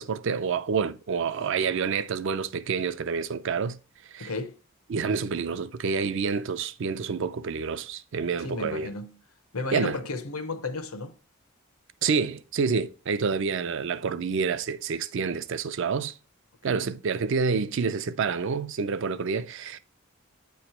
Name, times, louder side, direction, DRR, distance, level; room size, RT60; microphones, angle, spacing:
voice 1, 0.0-3.8 4.1-4.3 4.9-8.9 9.7-10.0 12.0-16.1 16.6-19.8, right 5 dB, 60° right, 0.4 m, -28 dB
voice 2, 4.2-4.6 8.4-9.2 9.5-11.1 16.7-16.9, left 3 dB, 85° left, 0.8 m, -33 dB
8.7 x 3.1 x 4.3 m
head